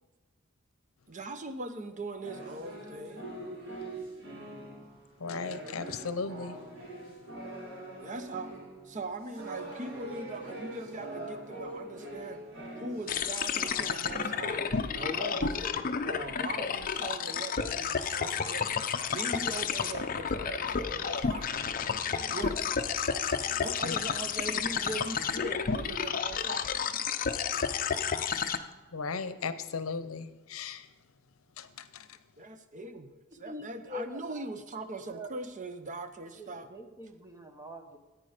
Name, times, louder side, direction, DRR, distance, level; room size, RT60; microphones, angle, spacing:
voice 1, 1.1-3.3 8.0-8.5 8.8-12.4 12.8-14.7 14.9-21.5 22.3-22.7 23.6-26.7 32.4-36.7, right 2 dB, 40° right, 10 dB, 0.7 m, -40 dB
sound 1, 2.2-13.2 13.5-15.7, right 2 dB, 65° right, 4.9 m, -43 dB
voice 2, 5.2-6.6 23.8-24.0 28.9-30.9 31.6-32.1, left 4 dB, 85° left, 13 dB, 0.7 m, -36 dB
sound 2, 13.1-28.6, left 6 dB, 40° left, 0.6 m, -31 dB
sound 3, 19.7-26.2, right 1 dB, 10° left, 4.2 m, -56 dB
voice 3, 33.3-34.5 35.1-35.3 36.3-38.0, left 1 dB, 15° right, 4 dB, 1.2 m, -44 dB
14.5 x 9.1 x 5.0 m, 1.2 s
head